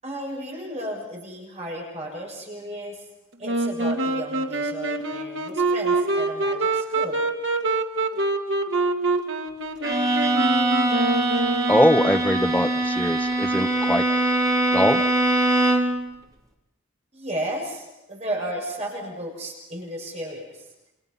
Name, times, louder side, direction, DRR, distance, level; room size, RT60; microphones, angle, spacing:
voice 1, 0.0-3.0 3.4-7.2 17.1-20.6, right 1 dB, 35° right, -1 dB, 6.8 m, -34 dB
Wind instrument woodwind instrument, 3.4-12.2, right 2 dB, 70° right, 2.3 m, -25 dB
Bowed string instrument, 9.8-16.0, right 2 dB, 20° right, 3.8 m, -22 dB
voice 2, 11.7-14.0 14.7-15.0, left 1 dB, 10° left, 5 dB, 1.1 m, -21 dB
30.0 x 26.5 x 5.7 m, 0.91 s
head